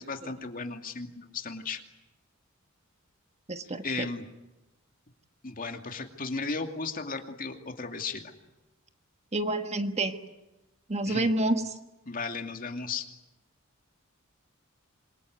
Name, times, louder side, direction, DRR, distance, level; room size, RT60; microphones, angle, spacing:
voice 1, 0.0-1.8 3.8-4.3 5.4-8.3 11.1-11.3 12.1-13.1, left 4 dB, 40° left, 5 dB, 2.5 m, -35 dB
voice 2, 3.5-4.1 9.3-10.2 10.9-11.8, right 2 dB, 30° right, 8 dB, 1.4 m, -28 dB
27.0 x 23.0 x 9.5 m, 1.0 s
head